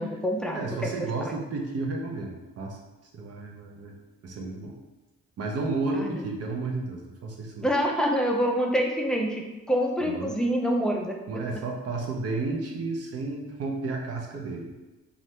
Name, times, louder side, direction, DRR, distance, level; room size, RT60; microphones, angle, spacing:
voice 1, 0.0-0.9 5.9-6.2 7.6-11.2, equal, ahead, 0 dB, 0.4 m, -26 dB
voice 2, 0.5-2.8 3.1-4.0 4.2-4.7 5.4-7.7 10.0-10.3 11.3-14.7, right 3 dB, 50° right, 0 dB, 0.7 m, -32 dB
2.6 x 2.5 x 3.2 m, 1.1 s
cardioid pair, 90°, 30 cm